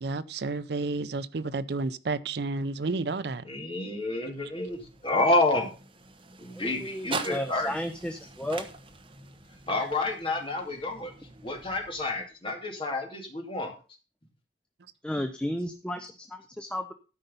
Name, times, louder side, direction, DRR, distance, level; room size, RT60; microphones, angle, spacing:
voice 1, 0.0-3.4, right 3 dB, 60° right, 15 dB, 0.5 m, -31 dB
voice 2, 3.5-5.7 6.4-7.7 9.7-11.1 11.4-13.7, left 2 dB, 30° left, 2 dB, 2.4 m, -29 dB
sound 1, 4.1-12.4, right 4 dB, 30° right, 1.0 m, -43 dB
voice 3, 6.6-8.7 15.0-16.9, equal, 5° left, 7 dB, 0.6 m, -33 dB
13.0 x 5.4 x 5.4 m, 0.34 s
head